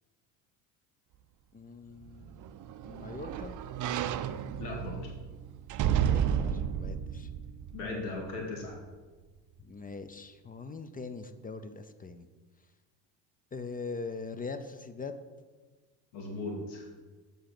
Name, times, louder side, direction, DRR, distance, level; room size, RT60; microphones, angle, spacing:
voice 1, 1.5-3.5 5.9-7.3 9.6-12.3 13.5-15.2, left 4 dB, 20° left, 10 dB, 0.4 m, -42 dB
sound 1, 2.1-8.4 8.9-9.0, right 9 dB, 40° right, 0.5 m, -32 dB
voice 2, 4.6-5.1 7.7-8.8 16.1-16.8, left 2 dB, 80° left, 0 dB, 2.2 m, -37 dB
6.7 x 5.4 x 5.8 m, 1.3 s
supercardioid pair, 80°, 49 cm